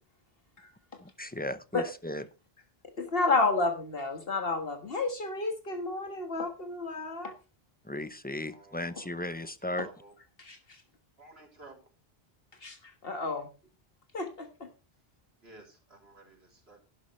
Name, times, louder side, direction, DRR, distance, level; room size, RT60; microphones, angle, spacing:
voice 1, 1.0-2.2 7.8-9.9, left 1 dB, 10° left, 13 dB, 0.6 m, -36 dB
voice 2, 3.0-7.3 10.4-10.8 12.6-13.5 14.1-14.7, left 3 dB, 70° left, 6 dB, 1.8 m, -31 dB
voice 3, 8.5-9.0 9.7-10.1 11.2-11.8 15.4-15.6 15.9-16.4 16.7-16.8, right 3 dB, 85° right, -1 dB, 3.7 m, -52 dB
12.0 x 11.0 x 3.2 m, 0.31 s
omnidirectional pair, 1.0 m